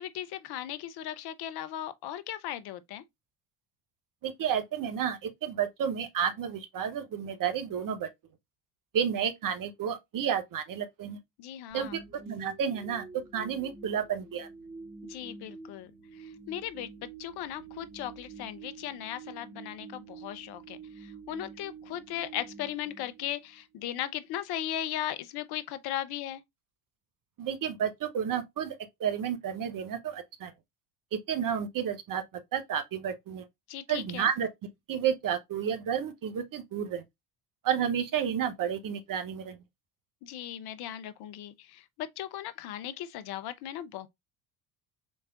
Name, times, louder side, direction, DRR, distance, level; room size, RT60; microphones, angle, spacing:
voice 1, 0.0-3.0 11.4-12.0 15.1-15.9 16.2-26.4 33.7-34.3 40.2-44.1, left 12 dB, 50° left, 0.6 m, -37 dB
voice 2, 4.2-8.1 8.9-11.2 11.7-13.0 13.3-14.5 27.4-30.5 31.3-32.2 32.5-33.4 33.9-34.5 34.9-37.0 37.6-39.6, right 8 dB, 40° right, 0.9 m, -31 dB
sound 1, 11.7-23.9, right 4 dB, 15° right, 1.6 m, -48 dB
4.2 x 3.2 x 2.3 m
hypercardioid pair, 65°, 49 cm